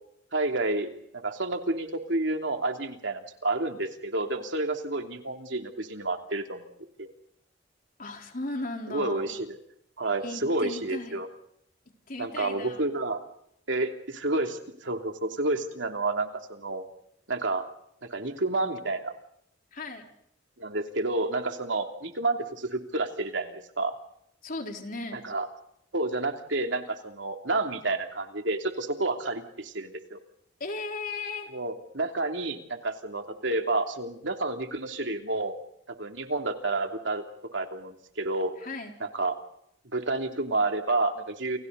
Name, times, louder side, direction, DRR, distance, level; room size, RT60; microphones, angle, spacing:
voice 1, 0.3-0.9 1.2-6.7 7.0-7.1 8.9-9.6 10.0-11.3 12.2-13.2 13.7-16.8 17.3-17.6 18.1-19.1 20.6-23.9 25.1-25.5 25.9-30.2 31.5-35.6 36.0-37.2 37.5-38.5 39.0-39.3 39.9-41.6, right 2 dB, 70° right, 4 dB, 3.1 m, -30 dB
voice 2, 8.0-9.3 10.2-11.2 12.1-12.9 19.7-20.1 24.4-25.2 30.6-31.5 38.6-39.0, left 3 dB, 50° left, 3 dB, 4.1 m, -36 dB
30.0 x 29.0 x 4.1 m, 0.73 s
head